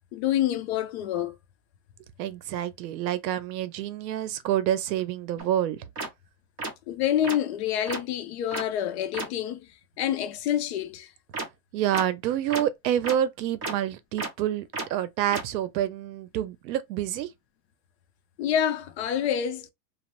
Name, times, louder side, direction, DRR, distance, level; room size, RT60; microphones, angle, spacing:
voice 1, 0.1-1.4 6.9-9.7 10.0-11.1 18.4-19.7, left 10 dB, 45° left, 0.4 m, -27 dB
voice 2, 2.2-5.9 11.7-14.6 14.9-17.3, right 11 dB, 85° right, 0.7 m, -28 dB
sound 1, 5.4-5.5 6.0-6.1 6.6-6.7 7.2-7.4 7.9-8.0 8.5-8.6 9.1-9.2 11.3-11.4 11.9-12.0 12.5-12.6 13.0-13.1 13.6-13.7 14.2-14.3 14.7-14.8 15.3-15.4, right 3 dB, 25° right, 0.7 m, -31 dB
3.0 x 2.0 x 3.0 m
supercardioid pair, 155°, 50 cm